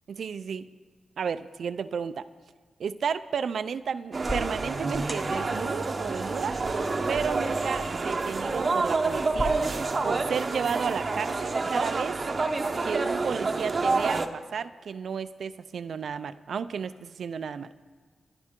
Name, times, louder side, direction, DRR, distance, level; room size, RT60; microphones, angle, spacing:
voice 1, 0.1-0.7 1.2-2.2 2.8-6.6 7.1-9.6 10.0-12.2 12.8-17.7, right 6 dB, 70° right, 13 dB, 0.5 m, -32 dB
sound 1, 4.1-14.3, right 3 dB, 35° right, 0.8 m, -28 dB
sound 2, 4.2-9.4, equal, 15° left, 1.3 m, -39 dB
30.0 x 10.5 x 3.7 m, 1.5 s
wide cardioid pair, 155°, 0 cm